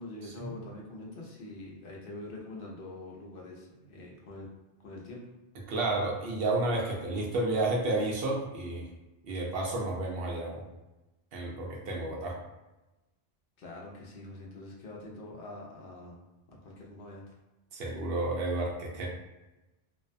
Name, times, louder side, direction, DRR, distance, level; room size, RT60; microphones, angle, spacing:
voice 1, 0.0-4.5 4.8-5.3 13.6-16.2 16.5-17.2, left 2 dB, 65° left, -2 dB, 0.7 m, -44 dB
voice 2, 5.7-8.9 9.2-10.6 11.3-12.3 17.7-19.1, right 2 dB, 65° right, -1 dB, 0.7 m, -31 dB
2.4 x 2.1 x 2.5 m, 1.0 s
omnidirectional pair, 1.1 m